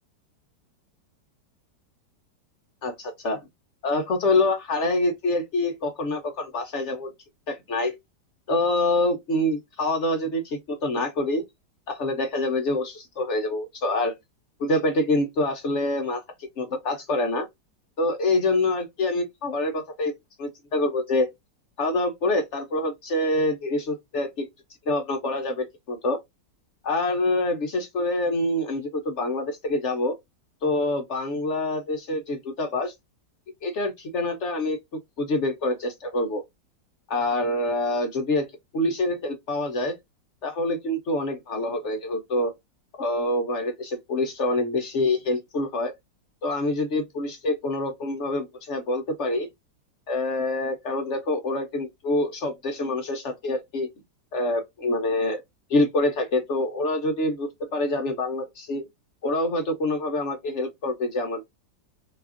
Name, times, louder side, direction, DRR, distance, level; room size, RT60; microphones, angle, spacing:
voice 1, 2.8-3.4 3.8-7.1 7.5-7.9 8.5-11.4 11.9-14.1 14.6-16.2 16.6-17.5 18.0-20.1 20.4-21.3 21.8-24.5 24.9-26.2 26.8-30.2 30.6-32.9 33.6-34.8 35.2-36.4 37.1-38.5 38.7-39.9 40.4-42.5 43.0-45.9 46.4-49.5 50.1-53.9 54.3-55.4 55.7-58.8 59.2-61.4, left 2 dB, 65° left, 0.7 m, -26 dB
4.1 x 2.4 x 2.4 m
omnidirectional pair, 1.9 m